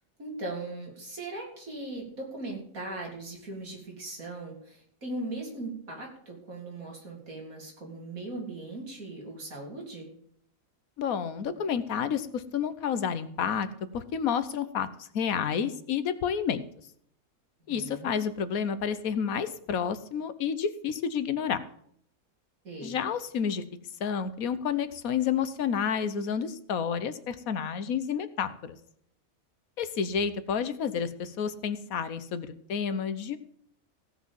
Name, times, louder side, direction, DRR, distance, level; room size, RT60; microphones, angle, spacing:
voice 1, 0.2-10.1 17.7-18.2 22.6-23.0, right 2 dB, 75° right, -1 dB, 3.7 m, -39 dB
voice 2, 11.0-13.7 13.9-16.6 17.7-21.6 22.8-23.6 24.0-28.7 29.8-33.4, left 7 dB, 80° left, 12 dB, 1.4 m, -30 dB
16.5 x 6.2 x 7.2 m, 0.66 s
omnidirectional pair, 1.5 m